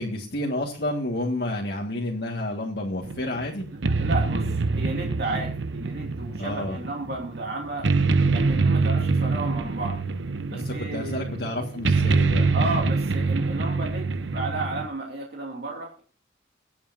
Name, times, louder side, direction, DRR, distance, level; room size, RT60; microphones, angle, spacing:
voice 1, 0.0-3.7 6.4-6.8 10.5-12.5, left 1 dB, 60° left, -2 dB, 1.9 m, -30 dB
sound 1, 3.0-14.8, right 3 dB, 85° right, 0.8 m, -25 dB
voice 2, 4.0-7.9 8.3-10.0 10.5-11.2 12.5-16.0, right 2 dB, 60° right, -1 dB, 2.8 m, -33 dB
23.0 x 8.6 x 2.7 m, 0.39 s
head